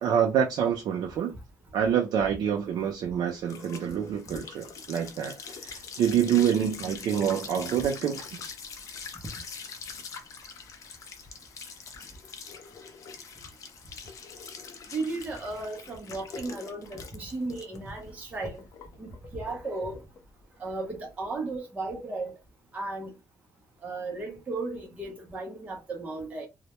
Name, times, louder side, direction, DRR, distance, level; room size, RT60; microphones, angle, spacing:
voice 1, 0.0-1.3 1.7-5.4 5.6-8.4, right 8 dB, 65° right, 0.5 m, -27 dB
sound 1, 2.5-21.5, left 5 dB, 45° left, 0.4 m, -44 dB
voice 2, 14.9-18.6 19.0-20.0 20.6-22.3 22.7-23.2 23.8-26.5, right 2 dB, 20° right, 0.6 m, -35 dB
2.1 x 2.1 x 2.9 m
cardioid pair, 180°, 8 cm